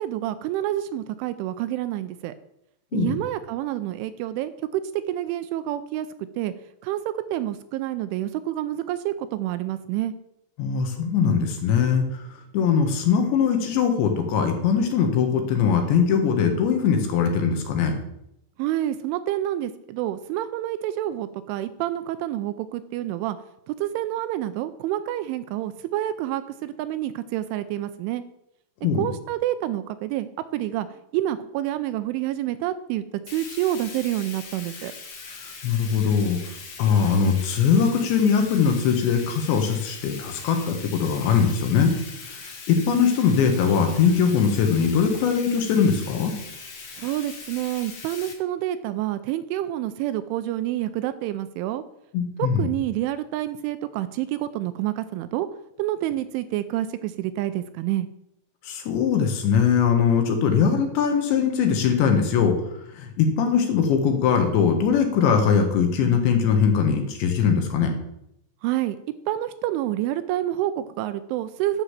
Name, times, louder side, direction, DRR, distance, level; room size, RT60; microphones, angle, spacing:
voice 1, 0.0-2.3 2.9-4.8 5.1-6.1 6.4-6.5 6.8-7.0 7.3-10.1 18.6-23.4 23.7-28.2 28.9-30.9 31.1-33.0 33.3-34.9 46.9-51.8 52.4-55.5 55.8-58.1 68.6-69.0 69.3-71.8, right 13 dB, 80° right, 12 dB, 2.9 m, -28 dB
voice 2, 10.6-12.2 12.5-18.0 28.8-29.0 35.6-36.4 36.8-41.9 42.7-46.3 52.1-52.7 58.7-62.5 63.0-67.9, left 6 dB, 70° left, 5 dB, 3.5 m, -21 dB
Bathtub (filling or washing), 33.3-48.3, left 5 dB, 50° left, 2.1 m, -41 dB
11.5 x 6.8 x 7.4 m, 0.80 s
omnidirectional pair, 5.7 m